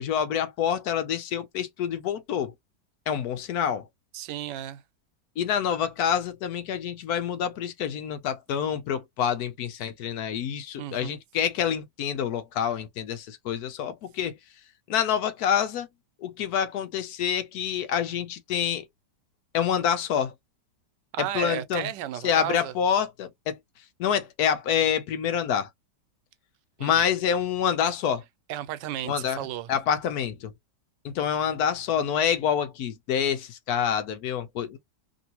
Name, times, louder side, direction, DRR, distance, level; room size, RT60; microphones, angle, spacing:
voice 1, 0.0-2.5 3.1-3.8 5.4-14.3 14.9-15.9 16.2-18.8 19.5-20.3 21.3-21.9 22.2-23.6 24.0-25.7 26.8-28.2 29.0-29.4 29.7-30.5 31.0-34.8, left 8 dB, 70° left, 1.0 m, -27 dB
voice 2, 4.1-4.8 10.8-11.2 21.1-22.7 26.8-27.1 28.5-29.7, right 12 dB, 90° right, 1.2 m, -34 dB
2.9 x 2.6 x 2.8 m
omnidirectional pair, 1.8 m